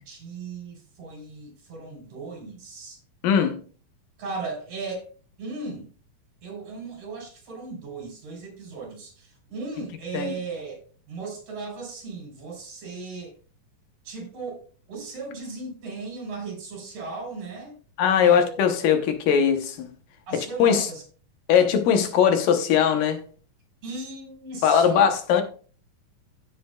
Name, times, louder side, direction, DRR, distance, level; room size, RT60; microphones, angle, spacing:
voice 1, 0.1-3.0 4.2-5.0 5.4-5.9 6.4-10.8 11.1-13.3 14.0-14.6 14.9-17.7 18.2-18.9 20.3-21.0 23.8-25.0, right 4 dB, 55° right, 1 dB, 5.1 m, -36 dB
voice 2, 3.2-3.6 10.1-10.3 18.0-19.9 20.3-20.9 21.5-23.2 24.6-25.4, left 8 dB, 75° left, 6 dB, 2.6 m, -20 dB
15.5 x 7.7 x 2.3 m, 0.39 s
omnidirectional pair, 4.0 m